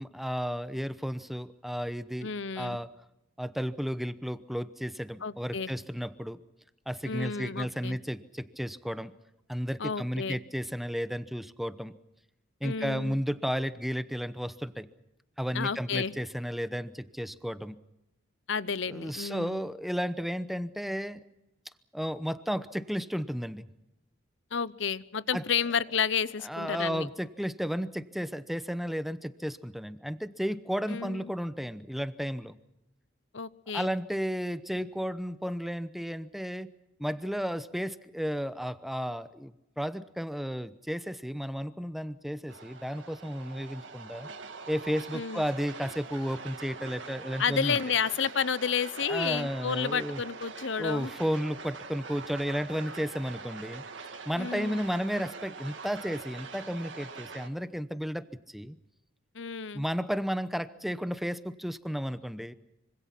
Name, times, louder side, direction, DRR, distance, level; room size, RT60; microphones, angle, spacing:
voice 1, 0.0-2.3 2.6-2.9 3.4-6.4 6.9-9.1 9.5-11.9 12.6-14.9 15.4-17.8 18.9-21.2 21.9-23.7 25.3-25.4 26.4-32.6 33.7-36.7 37.0-44.3 44.7-47.8 49.1-50.2 50.8-53.8 54.3-58.8 59.7-62.5, equal, ahead, 13 dB, 0.8 m, -33 dB
voice 2, 2.2-2.8 5.2-5.7 7.1-8.0 9.8-10.4 12.6-13.2 15.5-16.1 18.5-19.6 24.5-27.1 30.9-31.3 33.3-33.9 45.1-45.4 47.4-51.1 54.4-54.8 59.3-59.8, left 6 dB, 65° left, 17 dB, 0.8 m, -31 dB
sound 1, 42.5-57.5, right 4 dB, 65° right, 2.1 m, -44 dB
25.5 x 25.0 x 5.9 m, 0.91 s
head